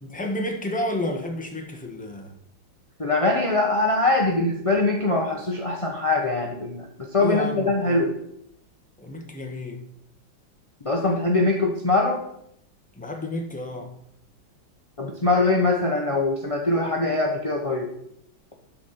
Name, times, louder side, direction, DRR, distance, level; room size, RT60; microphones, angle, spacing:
voice 1, 0.0-2.3 7.2-8.0 9.0-9.8 12.9-13.9, left 1 dB, 5° left, 2 dB, 0.8 m, -31 dB
voice 2, 3.0-6.9 7.1-8.1 10.8-12.2 15.0-17.9, left 2 dB, 35° left, 0 dB, 0.5 m, -22 dB
11.5 x 4.3 x 6.6 m, 0.74 s
omnidirectional pair, 2.2 m